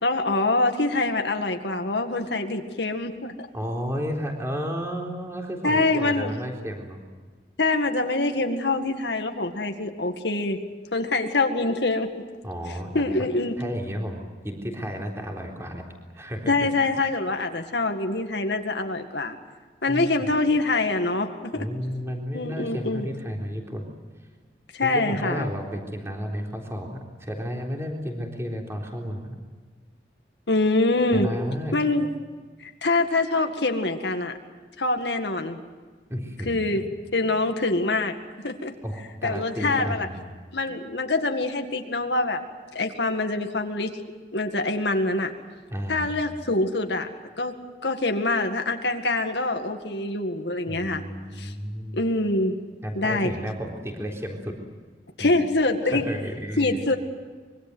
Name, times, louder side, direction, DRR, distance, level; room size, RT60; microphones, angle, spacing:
voice 1, 0.0-3.5 5.6-6.3 7.6-10.6 10.9-12.1 12.9-13.6 16.5-19.4 19.8-21.7 22.3-23.1 24.7-25.5 30.5-31.3 31.7-32.1 32.6-34.4 34.8-35.6 36.5-36.8 37.1-38.2 38.4-38.7 39.2-40.1 40.5-42.4 42.7-44.0 44.3-45.3 45.9-47.1 47.4-47.5 47.8-51.0 51.4-51.5 51.9-52.6 53.0-53.3 55.2-56.1 56.6-57.0, left 2 dB, 75° left, 5 dB, 2.1 m, -25 dB
voice 2, 3.5-7.0 12.4-13.1 13.6-15.8 16.1-16.5 19.9-20.3 21.5-23.9 24.8-29.4 31.1-31.7 36.1-36.8 38.8-40.2 45.7-46.1 50.7-52.1 52.8-54.6 55.2-55.4 55.9-56.8, equal, 15° right, 1 dB, 3.8 m, -32 dB
25.0 x 23.0 x 8.1 m, 1.4 s
head